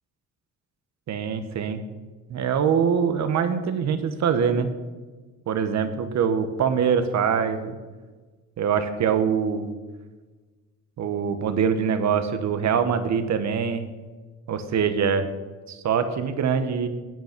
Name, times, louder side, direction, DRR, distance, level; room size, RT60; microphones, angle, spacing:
voice 1, 1.1-1.8 2.3-4.7 5.5-7.8 8.6-9.7 11.0-13.9 14.5-15.3 15.7-16.9, right 7 dB, 65° right, 9 dB, 1.3 m, -24 dB
11.0 x 8.3 x 6.1 m, 1.3 s
cardioid pair, 90°, 30 cm